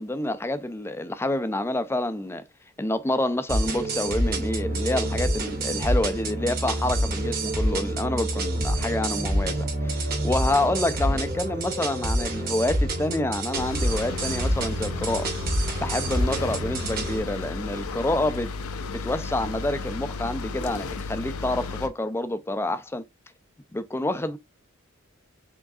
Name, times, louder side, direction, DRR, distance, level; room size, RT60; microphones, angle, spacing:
voice 1, 0.0-2.4 2.8-15.3 15.8-18.5 18.9-23.0 23.7-24.4, left 1 dB, 10° left, 0.4 m, -28 dB
sound 1, 3.5-17.2, right 1 dB, 45° right, 1.6 m, -27 dB
sound 2, 13.5-21.9, left 4 dB, 85° left, 0.7 m, -34 dB
4.7 x 3.8 x 2.4 m
head